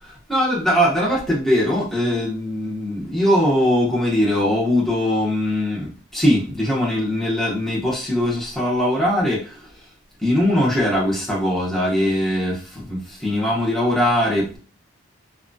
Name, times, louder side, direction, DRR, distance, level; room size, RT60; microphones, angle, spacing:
voice 1, 0.0-9.7 10.2-14.6, left 1 dB, ahead, 0.8 m, -21 dB
2.7 x 2.4 x 2.6 m
head